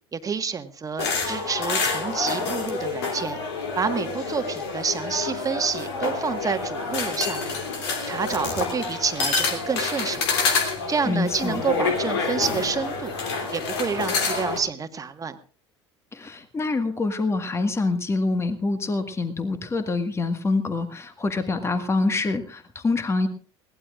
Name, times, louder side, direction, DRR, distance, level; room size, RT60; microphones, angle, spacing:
voice 1, 0.1-3.4 3.7-7.6 8.1-10.2 10.9-13.1 13.5-15.3, right 6 dB, 25° right, 9 dB, 1.5 m, -28 dB
sound 1, 1.0-14.6, left 4 dB, 65° left, 3.0 m, -27 dB
voice 2, 11.0-11.6 16.1-23.3, left 3 dB, 20° left, 9 dB, 1.7 m, -25 dB
21.5 x 18.0 x 2.5 m, 0.40 s
figure-of-eight pair, 70°, 15 cm